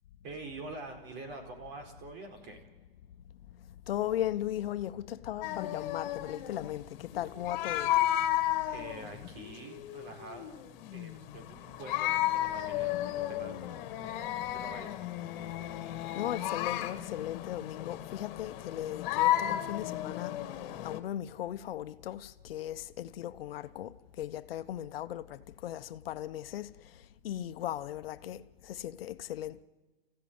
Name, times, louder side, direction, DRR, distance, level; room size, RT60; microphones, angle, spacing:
voice 1, 0.2-2.6 8.3-8.5 8.7-10.5 10.9-15.0, right 2 dB, 35° right, 4.6 m, -46 dB
voice 2, 3.9-7.9 16.1-20.3 20.8-23.9 24.2-26.7 27.2-28.4 28.7-29.6, left 12 dB, 75° left, 1.0 m, -37 dB
sound 1, 5.4-21.0, left 13 dB, 50° left, 2.0 m, -33 dB
29.5 x 15.0 x 9.5 m
hypercardioid pair, 140°, 30 cm